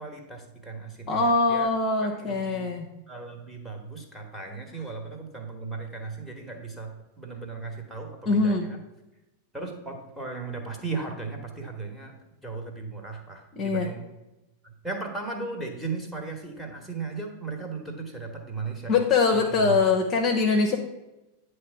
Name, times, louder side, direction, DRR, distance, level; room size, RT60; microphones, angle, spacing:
voice 1, 0.0-1.7 2.0-2.7 3.1-6.9 7.2-8.8 9.5-12.1 12.4-14.1 14.6-19.0 19.3-19.8, right 4 dB, ahead, 1 dB, 1.5 m, -36 dB
voice 2, 1.1-2.9 8.3-8.7 13.5-13.9 18.9-20.8, left 4 dB, 30° left, 2 dB, 0.9 m, -23 dB
9.5 x 3.3 x 6.0 m, 1.0 s
figure-of-eight pair, 90°, 0 cm